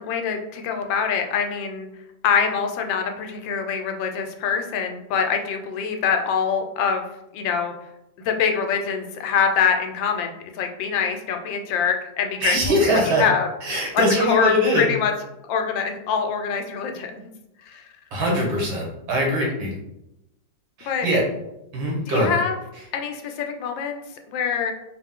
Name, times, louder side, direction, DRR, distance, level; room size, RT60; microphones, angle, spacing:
voice 1, 0.0-1.9 2.2-7.1 7.3-7.7 8.2-12.6 12.9-13.5 13.9-15.1 15.5-17.3 17.6-17.9 20.8-21.1 22.1-22.6 22.9-24.0 24.3-24.7, left 6 dB, 85° left, 4 dB, 1.4 m, -24 dB
voice 2, 12.4-13.2 13.6-14.9 18.1-19.7 20.8-21.2 21.7-22.3, equal, 90° right, -3 dB, 2.0 m, -22 dB
4.4 x 2.5 x 3.6 m, 0.88 s
omnidirectional pair, 2.0 m